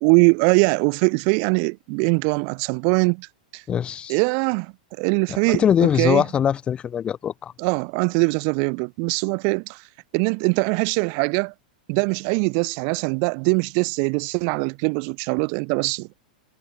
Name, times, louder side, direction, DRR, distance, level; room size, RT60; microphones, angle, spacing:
voice 1, 0.0-3.3 3.5-3.6 4.1-6.2 7.6-9.8 10.1-11.5 11.9-16.1, right 40 dB or more, 50° right, 1.8 m, -22 dB
voice 2, 3.7-4.2 5.5-7.5, left 8 dB, 25° left, 0.4 m, -22 dB
hypercardioid pair, 115°, 5 cm